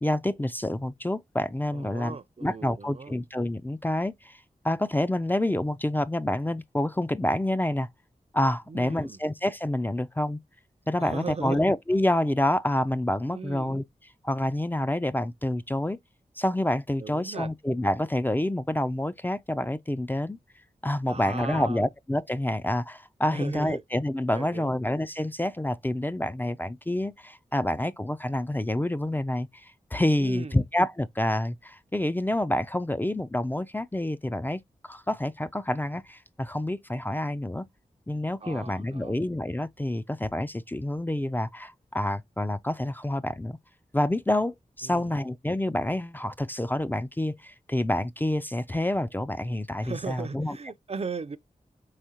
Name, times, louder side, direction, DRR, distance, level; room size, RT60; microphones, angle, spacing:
voice 1, 0.0-4.4 4.6-7.9 8.3-10.4 10.9-13.8 14.2-16.0 16.4-20.4 20.8-37.6 38.1-43.6 43.9-50.6, left 1 dB, 15° left, 0.4 m, -28 dB
voice 2, 1.7-3.1 8.7-9.2 11.0-11.6 13.3-13.8 17.0-17.5 21.1-21.8 23.3-23.8 24.3-24.8 30.2-30.6 38.4-39.2 44.8-45.1 49.8-51.4, right 4 dB, 45° right, 0.5 m, -37 dB
4.9 x 3.5 x 2.8 m
cardioid pair, 50°, 14 cm